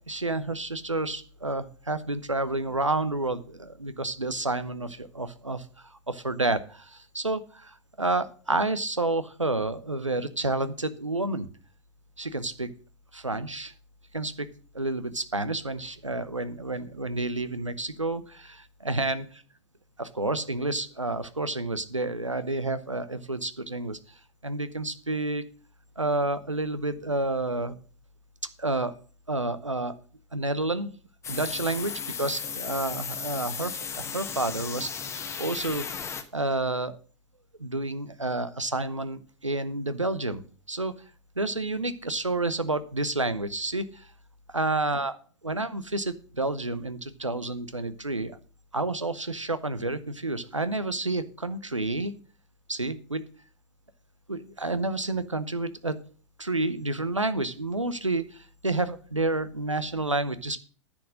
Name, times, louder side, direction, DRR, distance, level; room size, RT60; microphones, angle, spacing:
voice 1, 0.0-11.5 12.2-12.7 13.1-13.7 14.1-14.5 14.7-19.3 20.0-24.0 24.4-25.4 26.0-27.7 28.6-29.0 29.3-29.9 30.3-30.9 31.3-36.9 37.6-41.0 41.4-44.1 44.5-45.2 45.4-48.4 48.7-52.1 52.7-53.2 54.3-56.0 56.4-60.6, right 2 dB, 90° right, 13 dB, 0.8 m, -30 dB
sound 1, 31.2-36.2, left 6 dB, 20° left, 1.2 m, -35 dB
10.0 x 6.2 x 6.4 m, 0.41 s
figure-of-eight pair, 100°, 15 cm